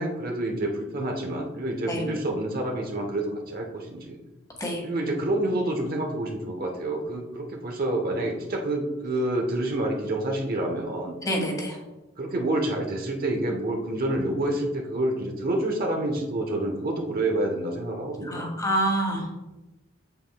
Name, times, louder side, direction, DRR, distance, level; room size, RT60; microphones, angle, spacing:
voice 1, 0.0-4.2 4.8-11.1 12.2-18.5, right 1 dB, 50° right, 1 dB, 1.0 m, -28 dB
voice 2, 11.2-11.8 18.3-19.2, right 1 dB, 20° left, 0 dB, 1.7 m, -26 dB
7.9 x 7.7 x 2.3 m, 1.0 s
head